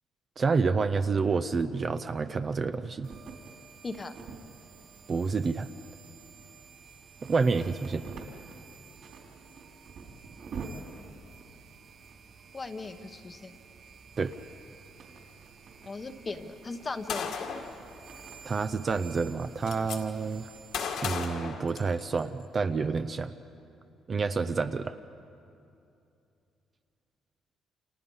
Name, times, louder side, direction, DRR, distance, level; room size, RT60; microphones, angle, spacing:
voice 1, 0.4-3.1 5.1-5.7 7.2-8.0 14.2-14.3 18.4-20.5 21.0-23.3 24.1-25.0, right 4 dB, 25° right, 10 dB, 0.5 m, -28 dB
sound 1, 3.0-21.0, right 5 dB, 50° right, 3.6 m, -48 dB
voice 2, 12.5-13.6 15.8-17.3, left 3 dB, 20° left, 8 dB, 1.0 m, -38 dB
Gunshot gunfire, 17.1-17.7 18.9-19.0 19.3-20.0 20.7-22.2, left 6 dB, 65° left, 2.1 m, -34 dB
29.5 x 28.5 x 5.6 m, 2.6 s
cardioid pair, 175°, 0 cm